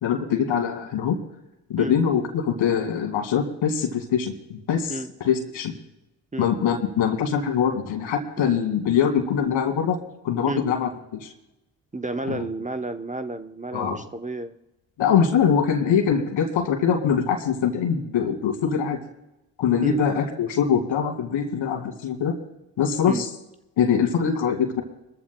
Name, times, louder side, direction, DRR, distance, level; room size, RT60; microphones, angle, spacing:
voice 1, 0.0-1.2 1.7-5.7 6.4-10.0 10.2-11.3 12.3-12.5 13.7-14.0 15.0-19.0 19.6-22.4 22.8-23.3 23.8-24.8, left 7 dB, 70° left, 5 dB, 2.3 m, -23 dB
voice 2, 11.9-14.6 19.8-20.0 23.1-23.3, right 2 dB, 15° right, 8 dB, 0.8 m, -31 dB
21.5 x 14.0 x 2.3 m, 0.90 s
hypercardioid pair, 45°, 48 cm